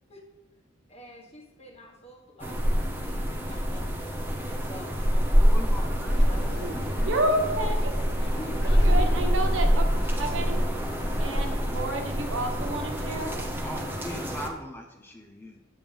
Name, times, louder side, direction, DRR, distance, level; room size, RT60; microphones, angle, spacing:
voice 1, 0.9-4.3 4.7-7.4 8.4-9.3, equal, 30° left, -1 dB, 1.5 m, -46 dB
sound 1, 2.4-14.5, equal, 10° right, 0.9 m, -25 dB
sound 2, 5.0-9.5 9.8-9.9, equal, 60° right, 1.3 m, -46 dB
voice 2, 5.3-6.3 6.6-7.2 13.6-15.6, equal, 10° left, 3 dB, 0.7 m, -40 dB
sound 3, 6.1-11.6, left 1 dB, 60° left, 0.7 m, -46 dB
voice 3, 7.0-8.0 8.8-9.8 10.2-10.6 11.2-13.3, right 1 dB, 75° right, 3 dB, 1.2 m, -29 dB
9.0 x 8.9 x 3.5 m, 1.1 s
head